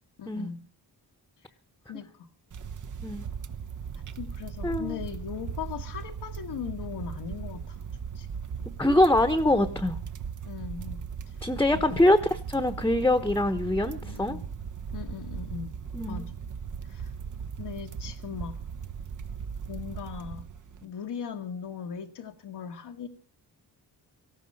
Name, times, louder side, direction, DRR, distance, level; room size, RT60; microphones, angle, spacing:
voice 1, 0.2-0.6 1.9-2.3 4.1-7.8 8.1-8.7 10.4-11.4 11.7-12.0 14.0-14.5 14.9-15.8 16.0-16.3 16.8-17.1 17.6-18.6 19.7-20.5 20.8-23.1, left 7 dB, 80° left, 1 dB, 1.4 m, -39 dB
sound 1, 2.5-20.8, right 7 dB, 50° right, 0.9 m, -38 dB
voice 2, 4.6-5.0 8.8-10.0 11.4-14.4 15.9-16.3, left 1 dB, 5° left, 10 dB, 1.0 m, -24 dB
18.5 x 14.5 x 5.4 m, 0.38 s
wide cardioid pair, 115°, 40 cm